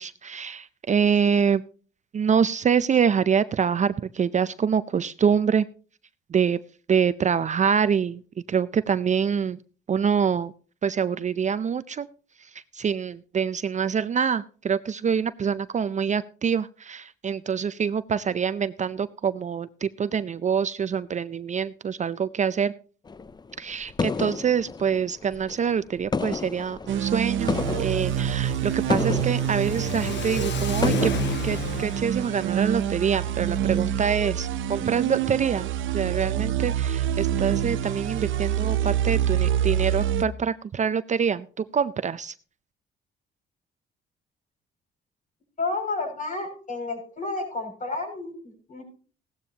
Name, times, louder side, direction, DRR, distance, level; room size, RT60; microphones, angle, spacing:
voice 1, 0.0-1.6 2.1-5.7 6.3-6.6 6.9-8.2 8.5-9.6 9.9-10.5 10.8-12.1 12.4-22.7 23.6-31.1 31.4-35.7 35.9-42.3, right 7 dB, 35° right, 15 dB, 0.5 m, -25 dB
sound 1, 23.1-25.7 26.0-31.9, left 4 dB, 20° left, 0.5 m, -31 dB
sound 2, 26.9-40.2, right 10 dB, 80° right, 0.8 m, -26 dB
Car / Accelerating revving vroom, 27.4-33.6, left 11 dB, 65° left, 0.8 m, -36 dB
voice 2, 45.6-48.8, left 3 dB, 40° left, 3 dB, 6.5 m, -31 dB
16.5 x 12.5 x 2.9 m, 0.40 s
cardioid pair, 90°, 20 cm